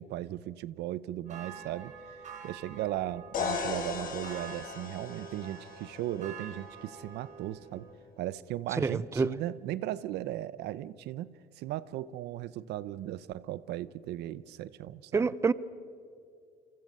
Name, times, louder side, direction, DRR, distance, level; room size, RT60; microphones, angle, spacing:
voice 1, 0.0-1.9 2.4-7.9 8.2-15.3, right 13 dB, 80° right, 0.7 m, -37 dB
sound 1, 1.2-7.9, right 7 dB, 45° right, 4.4 m, -47 dB
sound 2, 3.3-7.2, left 6 dB, 55° left, 3.6 m, -38 dB
voice 2, 8.8-9.3 15.1-15.5, right 4 dB, 15° right, 0.6 m, -27 dB
29.5 x 24.0 x 5.4 m
cardioid pair, 110°, 17 cm